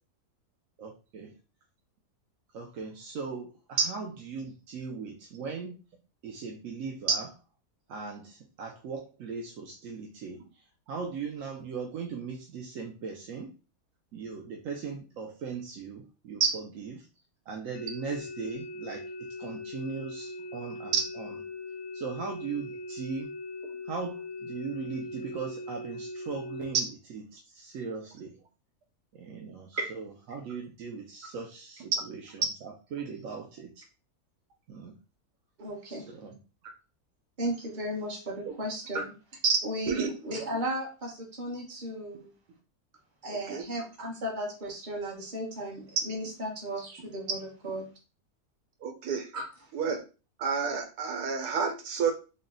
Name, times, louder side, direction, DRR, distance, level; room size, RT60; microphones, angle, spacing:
voice 1, 0.8-1.3 2.5-5.8 6.2-7.3 7.9-13.5 14.1-17.1 17.5-21.4 21.9-23.3 23.8-28.4 29.1-33.8 34.7-35.0 35.9-36.4, right 5 dB, 65° right, 1 dB, 0.9 m, -39 dB
sound 1, 17.7-26.7, left 2 dB, 70° left, 0.8 m, -40 dB
voice 2, 35.6-36.1 37.4-39.1 39.6-42.3 43.2-47.9 49.3-49.4, right 1 dB, 35° right, -1 dB, 1.2 m, -35 dB
voice 3, 48.8-49.3 49.7-50.0 50.4-52.1, right 6 dB, 85° right, 4 dB, 1.3 m, -28 dB
3.9 x 2.2 x 3.7 m, 0.32 s
omnidirectional pair, 1.7 m